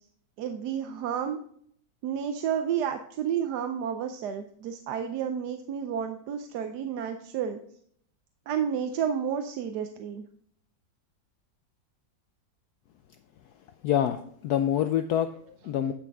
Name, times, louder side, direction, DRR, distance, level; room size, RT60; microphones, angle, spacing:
voice 1, 0.4-1.4 2.0-7.6 8.5-10.2, right 8 dB, 70° right, 7 dB, 1.2 m, -31 dB
voice 2, 13.8-15.9, left 10 dB, 70° left, 8 dB, 1.0 m, -26 dB
10.0 x 6.0 x 3.5 m, 0.63 s
omnidirectional pair, 2.0 m